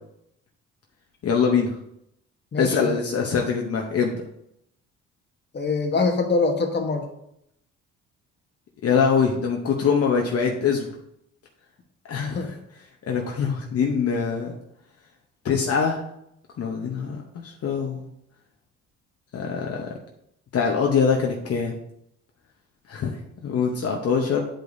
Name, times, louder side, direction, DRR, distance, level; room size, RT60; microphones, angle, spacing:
voice 1, 1.2-1.7 2.6-4.2 8.8-10.9 12.1-12.4 13.1-14.5 15.4-16.0 16.6-18.0 19.3-19.9 20.5-21.8 22.9-23.1 23.4-24.4, left 6 dB, 55° left, 1 dB, 0.9 m, -23 dB
voice 2, 2.5-3.0 5.5-7.0 12.2-12.5, left 3 dB, 35° left, 4 dB, 1.1 m, -24 dB
9.0 x 5.0 x 2.6 m, 0.77 s
cardioid pair, 90°, 30 cm